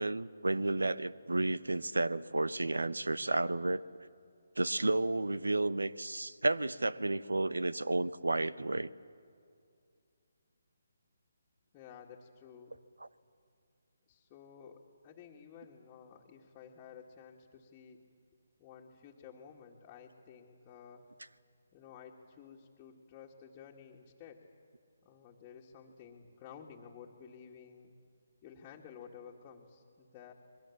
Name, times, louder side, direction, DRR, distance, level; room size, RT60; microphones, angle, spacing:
voice 1, 0.0-3.8 4.6-8.9, right 2 dB, 85° right, 17 dB, 0.8 m, -32 dB
voice 2, 11.7-12.8 14.1-18.0 18.6-21.1 21.7-24.4 25.0-27.9 28.4-30.3, left 7 dB, 25° left, -3 dB, 2.0 m, -53 dB
28.0 x 22.0 x 7.3 m, 2.3 s
figure-of-eight pair, 150°, 0 cm